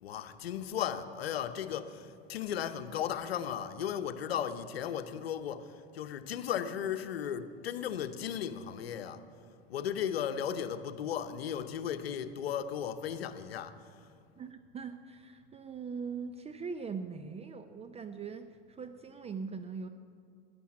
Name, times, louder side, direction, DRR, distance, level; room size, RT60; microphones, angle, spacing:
voice 1, 0.0-9.2 9.7-14.1, left 9 dB, 85° left, 0.8 m, -36 dB
voice 2, 14.4-19.9, right 5 dB, 20° right, 0.5 m, -41 dB
12.5 x 10.5 x 7.4 m
hypercardioid pair, 95°, 30 cm